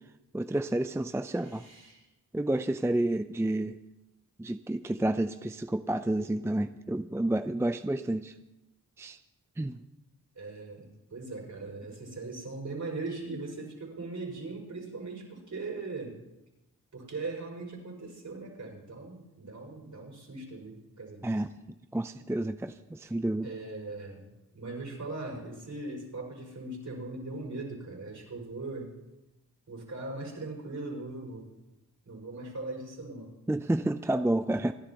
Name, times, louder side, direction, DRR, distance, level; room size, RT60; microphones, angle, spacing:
voice 1, 0.3-1.6 2.3-3.8 4.4-8.3 9.0-9.2 9.6-9.8 21.2-21.5 21.9-23.5 33.5-34.7, right 1 dB, 10° right, 10 dB, 0.5 m, -30 dB
voice 2, 1.3-2.0 10.4-16.2 16.9-21.4 23.4-28.9 29.7-31.5 32.0-33.3, right 3 dB, 55° right, -1 dB, 5.9 m, -40 dB
28.5 x 11.5 x 3.0 m, 1.0 s
cardioid pair, 60°, 35 cm